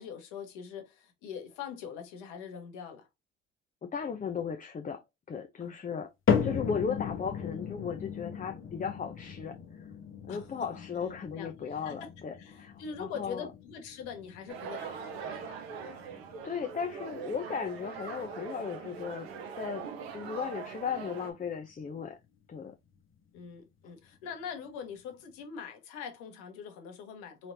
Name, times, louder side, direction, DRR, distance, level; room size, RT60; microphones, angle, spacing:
voice 1, 0.0-3.1 5.6-5.7 10.3-10.8 11.3-12.1 12.4-15.6 23.3-27.5, left 7 dB, 75° left, 1.3 m, -43 dB
voice 2, 3.8-5.0 5.3-6.1 6.4-9.5 10.3-13.5 16.4-19.3 19.6-19.8 20.1-22.2 22.5-22.7, left 6 dB, 25° left, 0.6 m, -36 dB
sound 1, 6.3-22.6 22.9-23.4 24.0-24.1 24.9-25.0, left 7 dB, 40° left, 1.3 m, -37 dB
sound 2, 14.5-21.3, right 6 dB, 85° right, 0.9 m, -42 dB
4.1 x 3.2 x 2.7 m
hypercardioid pair, 60°, 31 cm